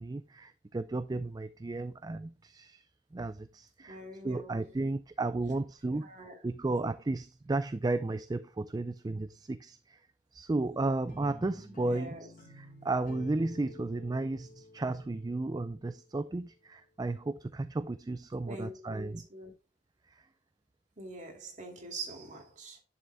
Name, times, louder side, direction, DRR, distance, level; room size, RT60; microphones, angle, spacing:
voice 1, 0.0-2.8 3.1-6.1 6.4-10.0 10.3-19.2 20.1-20.2, right 2 dB, 20° right, 0.3 m, -34 dB
voice 2, 3.9-4.6 6.0-6.4 11.9-12.3 18.5-19.5 21.0-22.8, right 2 dB, 40° right, 2.5 m, -44 dB
sound 1, 11.1-16.2, left 1 dB, 45° left, 1.7 m, -51 dB
10.0 x 7.5 x 2.2 m
head